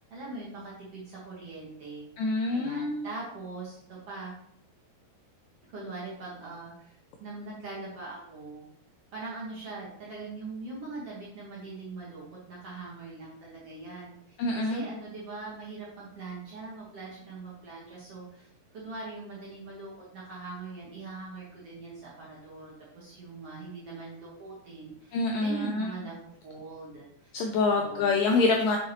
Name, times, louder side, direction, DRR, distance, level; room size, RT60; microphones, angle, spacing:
voice 1, 0.1-2.1 2.5-3.8 4.1-4.3 5.7-8.7 9.1-27.3 27.7-28.2, right 3 dB, 55° right, -6 dB, 1.9 m, -42 dB
voice 2, 2.2-3.1 14.4-14.8 25.1-25.9 27.3-28.8, left 3 dB, 85° left, 2 dB, 1.9 m, -26 dB
6.5 x 6.1 x 2.9 m, 0.69 s
omnidirectional pair, 4.5 m